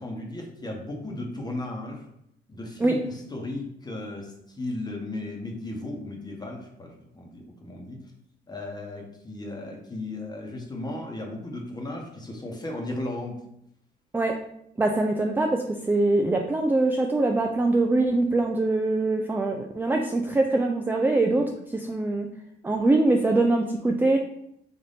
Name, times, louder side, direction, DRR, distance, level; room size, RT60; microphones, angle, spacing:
voice 1, 0.0-2.0 2.5-8.0 8.5-13.4, left 2 dB, 20° left, 1 dB, 1.0 m, -35 dB
voice 2, 14.8-21.4 21.7-22.3 22.6-24.2, right 2 dB, 10° right, 2 dB, 0.3 m, -23 dB
4.0 x 2.6 x 3.4 m, 0.75 s
cardioid pair, 90°, 20 cm